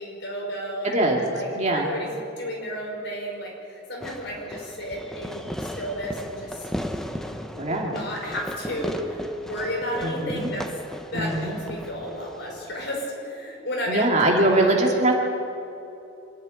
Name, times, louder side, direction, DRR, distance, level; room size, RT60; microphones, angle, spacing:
voice 1, 0.0-1.0 1.3-1.5 1.7-6.7 7.3-14.7, equal, 60° left, -1 dB, 5.7 m, -32 dB
voice 2, 0.8-1.2 1.6-1.9 7.6-7.9 10.0-10.5 11.1-11.6 13.9-15.1, right 2 dB, 35° right, 0 dB, 2.6 m, -22 dB
Fireworks, 4.0-13.0, equal, ahead, 0.9 m, -36 dB
26.5 x 10.5 x 9.9 m, 2.9 s
head